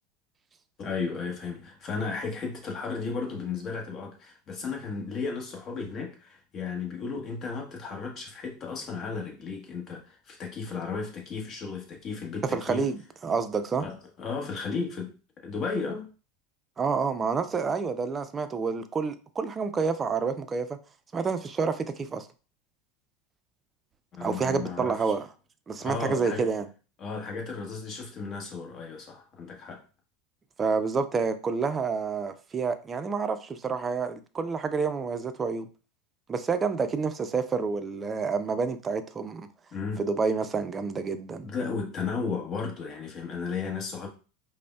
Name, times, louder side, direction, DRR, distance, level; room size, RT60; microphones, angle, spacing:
voice 1, 0.8-12.9 13.8-15.1 15.4-16.1 24.1-25.0 25.8-26.5 27.0-29.8 39.7-40.0 41.4-44.1, left 5 dB, 40° left, 1.1 m, -34 dB
voice 2, 12.4-13.9 16.8-20.8 21.1-22.3 24.2-25.3 25.7-26.7 30.6-35.7 36.3-39.5 40.0-41.5, right 5 dB, 25° right, 0.4 m, -28 dB
5.0 x 2.1 x 2.3 m
supercardioid pair, 110°, 0 cm